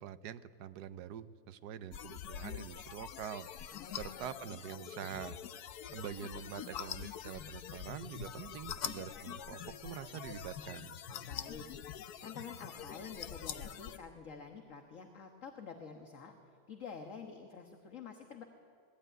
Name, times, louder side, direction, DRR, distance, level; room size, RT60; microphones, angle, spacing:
voice 1, 0.0-3.5 3.9-5.4 5.9-11.0, right 9 dB, 75° right, 12 dB, 1.4 m, -45 dB
sound 1, 1.9-14.0, left 9 dB, 70° left, 1.3 m, -45 dB
voice 2, 3.7-4.4 11.1-11.7 12.2-16.4 16.7-18.4, left 5 dB, 50° left, 4 dB, 1.7 m, -48 dB
25.0 x 19.0 x 9.2 m, 2.3 s
omnidirectional pair, 1.8 m